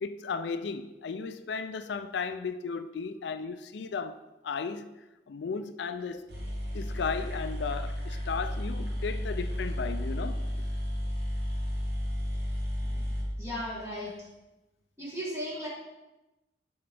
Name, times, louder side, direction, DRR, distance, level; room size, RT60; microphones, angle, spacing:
voice 1, 0.0-4.9 5.3-6.2 6.7-10.5 12.9-13.2, left 5 dB, 65° left, 0.4 m, -35 dB
sound 1, 6.0-6.1 6.3-14.1, equal, 55° right, 1.5 m, -33 dB
voice 2, 13.4-14.1 15.0-15.7, equal, 15° right, 1.6 m, -35 dB
10.5 x 4.3 x 3.4 m
head